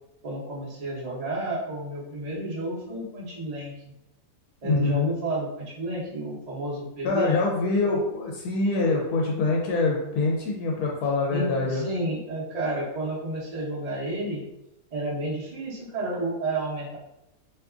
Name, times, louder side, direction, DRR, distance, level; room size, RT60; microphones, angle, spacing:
voice 1, 0.2-3.8 4.6-7.4 11.3-14.4 14.9-17.0, right 1 dB, 35° right, -6 dB, 0.7 m, -31 dB
voice 2, 4.6-5.1 7.0-11.9, left 3 dB, 85° left, 0 dB, 1.1 m, -25 dB
3.4 x 2.8 x 2.4 m, 0.87 s
omnidirectional pair, 1.6 m